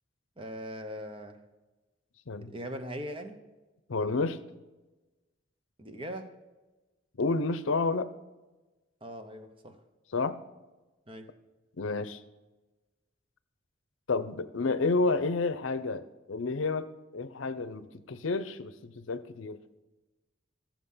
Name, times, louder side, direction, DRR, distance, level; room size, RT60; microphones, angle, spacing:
voice 1, 0.4-1.4 2.4-3.4 5.8-6.3 9.0-9.8 11.1-11.3, equal, 25° right, 7 dB, 1.0 m, -40 dB
voice 2, 3.9-4.4 7.2-8.1 10.1-10.4 11.8-12.2 14.1-19.6, left 3 dB, 80° left, 13 dB, 0.7 m, -30 dB
14.5 x 7.3 x 5.6 m, 1.1 s
head